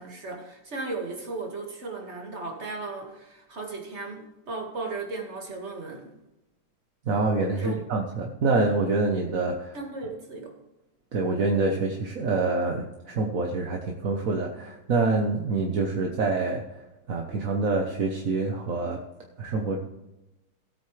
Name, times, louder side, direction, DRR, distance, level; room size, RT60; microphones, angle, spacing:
voice 1, 0.0-6.1 7.6-7.8 9.7-10.5, right 3 dB, 30° right, 1 dB, 2.2 m, -36 dB
voice 2, 7.1-9.8 11.1-16.8 17.1-19.0 19.4-19.8, right 3 dB, 50° right, 2 dB, 1.2 m, -26 dB
17.0 x 8.7 x 3.3 m, 0.97 s
omnidirectional pair, 2.3 m